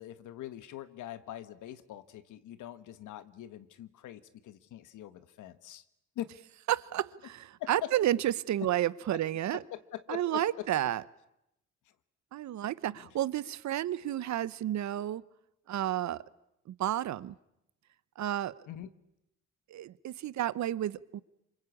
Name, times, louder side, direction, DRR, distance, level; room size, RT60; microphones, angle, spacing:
voice 1, 0.0-5.8 6.1-6.3 7.6-7.9 9.1-9.2 9.5-10.6 12.9-13.1 18.7-18.9, left 13 dB, 80° left, 13 dB, 1.5 m, -43 dB
voice 2, 6.7-9.6 10.1-11.0 12.3-15.2 15.7-16.2 16.7-17.3 18.2-18.5 19.7-21.2, right 12 dB, 65° right, 18 dB, 0.9 m, -31 dB
26.5 x 24.0 x 8.5 m, 0.83 s
cardioid pair, 90°, 30 cm